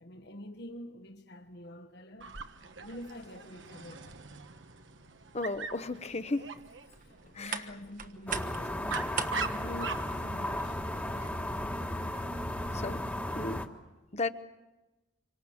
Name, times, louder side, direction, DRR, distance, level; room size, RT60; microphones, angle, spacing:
voice 1, 0.0-2.3 2.8-4.2 7.0-10.8, left 1 dB, 60° left, 1.4 m, -46 dB
Dog, 2.2-12.8, right 5 dB, 80° right, 1.3 m, -43 dB
voice 2, 5.3-6.5 7.3-7.6 12.7-13.0 13.3-13.6 14.1-14.3, left 3 dB, 35° left, 0.9 m, -34 dB
sound 1, 6.6-11.7, right 6 dB, 45° right, 1.3 m, -42 dB
sound 2, 8.3-13.7, left 1 dB, 10° left, 1.5 m, -35 dB
27.0 x 24.5 x 7.2 m
head